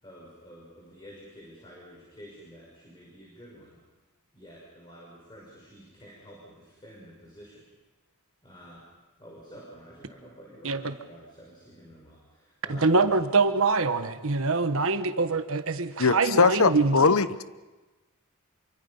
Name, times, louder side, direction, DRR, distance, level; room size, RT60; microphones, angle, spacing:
voice 1, 0.0-3.8 4.3-7.6 8.4-8.8 9.2-13.2, equal, 20° left, -4 dB, 5.9 m, -49 dB
voice 2, 12.7-17.0, right 3 dB, 65° right, 9 dB, 1.3 m, -24 dB
voice 3, 16.0-17.4, left 4 dB, 70° left, 14 dB, 0.9 m, -21 dB
27.5 x 24.5 x 5.6 m, 1.2 s
head